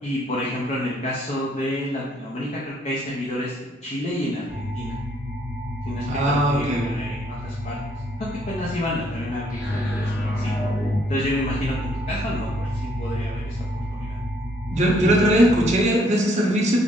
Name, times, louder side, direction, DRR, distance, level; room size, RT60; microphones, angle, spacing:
voice 1, 0.0-5.0 5.9-10.6 11.1-13.6 13.9-14.2, left 1 dB, 35° left, -5 dB, 0.5 m, -29 dB
sound 1, 4.5-15.7, equal, 15° left, 1.2 m, -29 dB
voice 2, 6.1-6.9 14.7-16.8, right 1 dB, 40° right, -2 dB, 0.6 m, -19 dB
3.7 x 2.0 x 3.5 m, 1.1 s
head